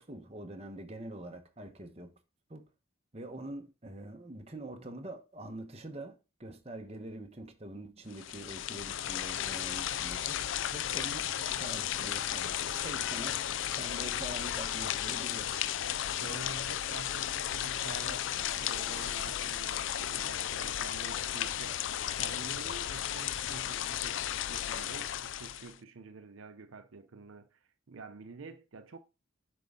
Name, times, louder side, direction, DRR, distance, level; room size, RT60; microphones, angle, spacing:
voice 1, 0.0-2.2 2.5-2.6 3.1-10.4 10.7-15.5 22.2-22.4, right 1 dB, 30° right, 1.0 m, -45 dB
sound 1, 8.1-25.7, left 11 dB, 65° left, 0.4 m, -34 dB
voice 2, 16.2-18.3 18.6-21.8 22.1-24.2 24.5-29.0, right 4 dB, 70° right, 0.6 m, -48 dB
7.6 x 5.4 x 3.7 m
head